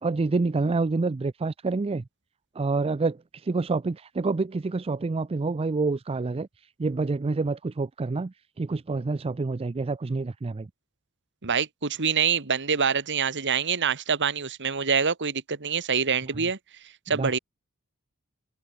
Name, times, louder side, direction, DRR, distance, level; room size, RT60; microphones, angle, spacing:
voice 1, 0.0-2.0 2.6-6.5 6.8-10.7 17.1-17.4, right 3 dB, 25° right, 0.4 m, -27 dB
voice 2, 11.4-16.6 17.1-17.4, right 6 dB, 55° right, 1.7 m, -25 dB
head